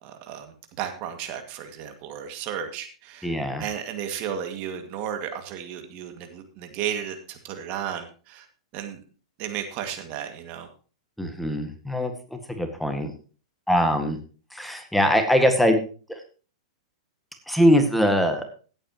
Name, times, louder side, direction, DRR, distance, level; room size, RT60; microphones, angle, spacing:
voice 1, 0.0-8.5 8.7-9.0 9.4-10.7, right 9 dB, 45° right, 6 dB, 2.1 m, -34 dB
voice 2, 3.2-3.6 11.2-13.1 13.7-14.2 14.5-15.8 16.1-16.2 17.5-18.4, equal, ahead, 6 dB, 1.9 m, -22 dB
16.5 x 9.0 x 3.0 m, 0.37 s
hypercardioid pair, 105°, 4 cm